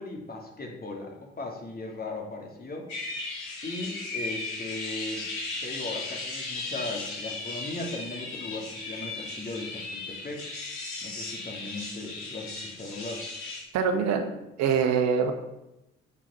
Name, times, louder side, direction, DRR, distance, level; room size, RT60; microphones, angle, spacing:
voice 1, 0.0-2.9 3.6-5.2 5.6-10.5 11.0-13.2, left 2 dB, 30° left, 1 dB, 2.6 m, -38 dB
sound 1, 2.9-13.6, left 3 dB, 70° left, 3.2 m, -36 dB
voice 2, 13.7-14.3 14.6-15.3, right 6 dB, 65° right, 6 dB, 1.2 m, -24 dB
8.2 x 6.1 x 5.6 m, 0.91 s
hypercardioid pair, 45°, 29 cm